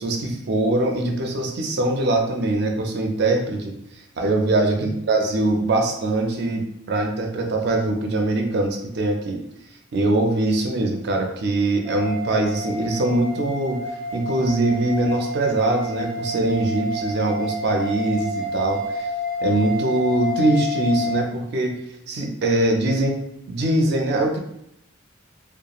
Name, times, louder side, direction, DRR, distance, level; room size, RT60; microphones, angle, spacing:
voice 1, 0.0-3.7 4.2-9.4 9.9-13.8 14.1-19.1 19.4-21.8 22.1-23.2 23.5-24.4, right 2 dB, 50° right, 3 dB, 0.4 m, -22 dB
sound 1, 11.8-21.2, left 1 dB, 5° right, 0.5 m, -29 dB
2.8 x 2.1 x 2.4 m, 0.75 s
head